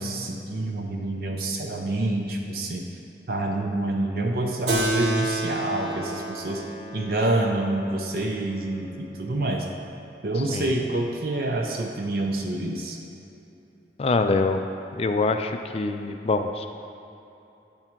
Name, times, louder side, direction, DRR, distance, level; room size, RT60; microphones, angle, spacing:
voice 1, 0.0-2.8 3.3-6.6 6.9-9.7 10.2-13.0, right 2 dB, 55° right, 1 dB, 0.5 m, -27 dB
Keyboard (musical), 4.7-9.5, right 1 dB, 75° right, 0.9 m, -31 dB
voice 2, 14.0-14.6 14.9-16.7, left 3 dB, 35° left, 7 dB, 0.3 m, -24 dB
9.9 x 3.6 x 4.4 m, 2.8 s
head